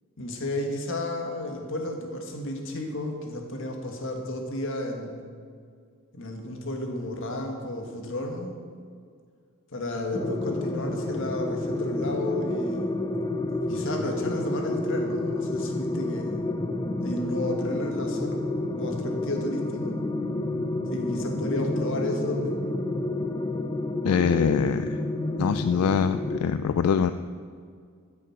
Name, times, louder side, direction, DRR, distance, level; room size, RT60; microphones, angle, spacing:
voice 1, 0.2-5.2 6.1-8.6 9.7-12.9 13.6-16.4 17.0-20.0 20.9-22.6, left 1 dB, 60° left, 2 dB, 1.6 m, -32 dB
sound 1, 10.1-26.4, left 2 dB, 20° left, 0.5 m, -29 dB
voice 2, 24.0-25.0 25.4-27.1, left 7 dB, 85° left, 11 dB, 0.3 m, -24 dB
13.5 x 6.4 x 5.8 m, 2.1 s
head